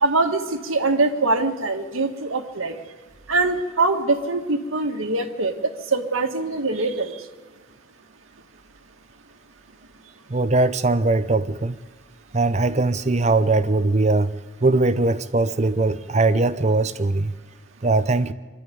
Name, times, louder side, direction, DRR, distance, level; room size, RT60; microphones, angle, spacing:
voice 1, 0.0-2.8 3.3-7.1, right 3 dB, 90° right, 1.7 m, -23 dB
voice 2, 10.3-11.8 12.3-14.3 14.6-17.3 17.8-18.3, right 2 dB, 35° right, 0.7 m, -20 dB
23.5 x 12.5 x 9.3 m
head